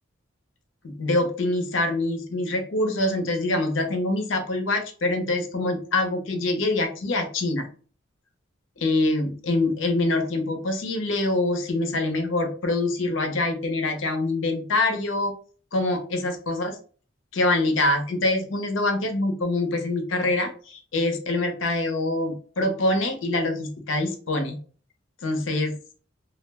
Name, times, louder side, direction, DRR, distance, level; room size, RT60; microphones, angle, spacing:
voice 1, 0.8-7.7 8.8-15.3 15.7-16.8 17.3-24.6 25.2-25.7, left 2 dB, 90° left, 6 dB, 0.6 m, -25 dB
2.3 x 2.0 x 3.3 m, 0.40 s
head